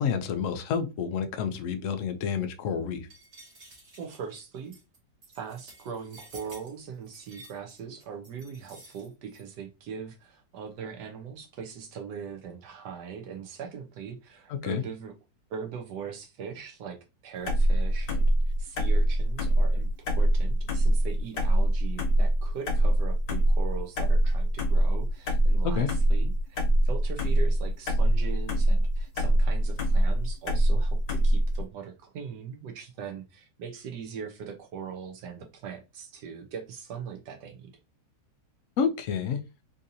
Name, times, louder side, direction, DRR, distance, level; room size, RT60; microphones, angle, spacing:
voice 1, 0.0-3.0 14.6-14.8 25.6-25.9 38.8-39.4, left 7 dB, 85° left, 6 dB, 0.7 m, -29 dB
sound 1, 3.1-9.4, right 2 dB, 50° right, 1.9 m, -52 dB
voice 2, 4.0-4.7 5.3-15.1 15.5-17.0 17.2-19.9 20.2-37.7, right 6 dB, 75° right, 3 dB, 1.2 m, -40 dB
sound 2, 17.5-31.6, right 1 dB, 65° left, 1.3 m, -24 dB
3.9 x 2.7 x 2.6 m, 0.27 s
omnidirectional pair, 1.9 m